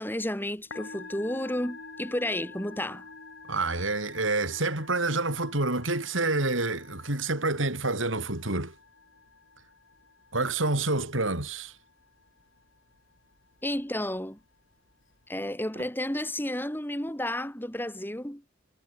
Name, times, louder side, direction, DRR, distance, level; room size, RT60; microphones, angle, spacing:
voice 1, 0.0-3.1 13.6-14.4 15.3-18.4, left 1 dB, 10° left, 3.5 m, -32 dB
Musical instrument, 0.5-15.3, left 3 dB, 90° left, 6.7 m, -49 dB
voice 2, 3.5-8.7 10.3-11.8, right 2 dB, 90° right, 5.7 m, -28 dB
head